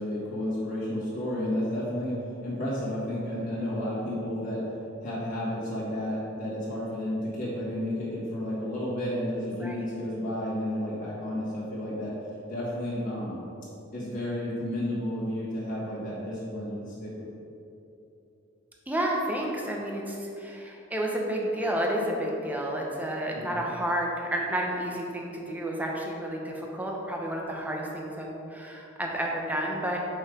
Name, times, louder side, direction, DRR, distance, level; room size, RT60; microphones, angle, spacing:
voice 1, 0.0-2.1 2.4-4.6 5.0-12.1 12.5-13.4 13.9-17.3 23.3-23.7, left 1 dB, 45° left, -8 dB, 1.3 m, -32 dB
voice 2, 9.5-9.9 18.9-30.0, right 1 dB, 10° right, -1 dB, 0.8 m, -31 dB
5.5 x 4.5 x 5.0 m, 2.8 s
head